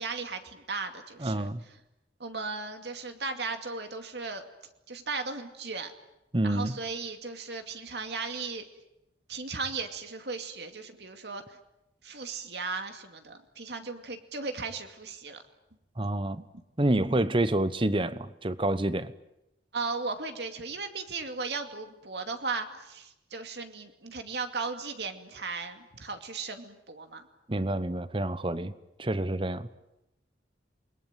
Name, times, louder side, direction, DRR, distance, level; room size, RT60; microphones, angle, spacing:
voice 1, 0.0-1.5 2.2-4.4 4.9-5.9 6.4-8.6 9.3-11.6 12.0-15.4 16.0-16.1 19.7-27.2, right 4 dB, 65° right, 6 dB, 2.4 m, -36 dB
voice 2, 1.2-1.6 6.3-6.8 16.0-16.4 16.8-19.1 27.5-28.7 29.0-29.7, right 1 dB, 30° right, 14 dB, 1.0 m, -28 dB
28.0 x 21.5 x 9.2 m, 0.89 s
head